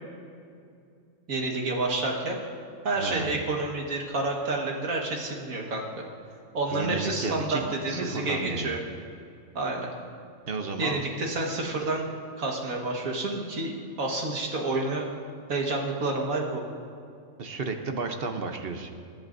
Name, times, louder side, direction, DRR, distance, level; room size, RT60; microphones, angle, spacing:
voice 1, 1.3-2.4 2.8-6.0 6.5-8.8 9.6-9.9 10.8-12.1 12.4-13.7 14.0-15.1 15.5-16.6, right 2 dB, 90° right, 0 dB, 2.1 m, -29 dB
voice 2, 3.0-3.4 6.7-8.7 10.5-11.0 17.4-18.9, right 4 dB, 50° right, 5 dB, 1.0 m, -32 dB
25.5 x 11.0 x 2.6 m, 2.4 s
omnidirectional pair, 1.4 m